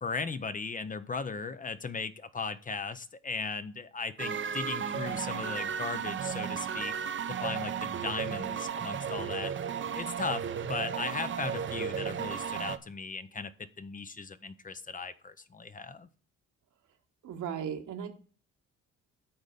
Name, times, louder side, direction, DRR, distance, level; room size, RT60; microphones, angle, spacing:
voice 1, 0.0-6.9 7.3-9.5 9.9-16.1, left 4 dB, 25° left, 13 dB, 0.6 m, -37 dB
sound 1, 4.2-12.8, right 7 dB, 40° right, 0.7 m, -34 dB
voice 2, 17.2-18.1, right 8 dB, 75° right, 4 dB, 1.6 m, -36 dB
8.7 x 4.1 x 6.8 m, 0.40 s
cardioid pair, 90°, 30 cm